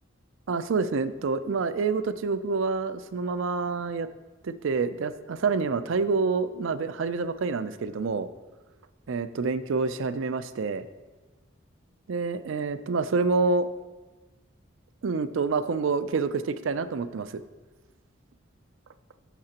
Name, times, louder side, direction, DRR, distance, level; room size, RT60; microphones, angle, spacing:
voice 1, 0.5-4.1 4.4-8.3 9.1-10.9 12.1-13.7 15.0-17.4, right 4 dB, 75° right, 12 dB, 0.4 m, -27 dB
14.0 x 5.8 x 2.9 m, 1.2 s
head